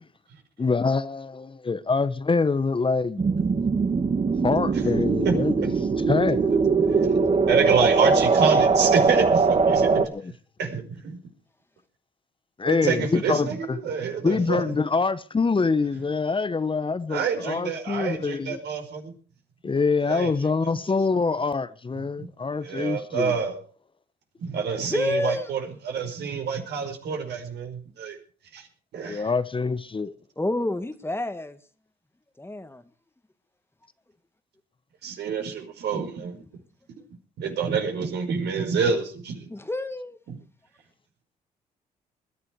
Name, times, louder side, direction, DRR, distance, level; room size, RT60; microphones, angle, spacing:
voice 1, 0.6-3.2 4.4-6.5 10.0-10.3 12.6-13.8 14.2-18.6 19.6-23.3 29.0-30.1, left 4 dB, 30° left, 1.1 m, -25 dB
sound 1, 3.2-10.1, right 4 dB, 35° right, 2.1 m, -21 dB
voice 2, 5.2-5.7 6.9-7.1 7.5-9.3 9.6-10.1 10.6-11.2 12.6-14.6 17.1-19.1 20.0-20.3 20.6-20.7 22.1-22.3 22.6-23.6 24.4-28.2 28.5-28.7 28.9-29.2 35.0-36.4 37.4-39.5 40.3-40.4, right 6 dB, 70° right, 5.1 m, -27 dB
voice 3, 24.9-25.5 30.4-31.6 32.4-32.8 39.5-40.2, left 2 dB, 15° left, 1.9 m, -28 dB
21.0 x 11.5 x 4.7 m
supercardioid pair, 60°, 18 cm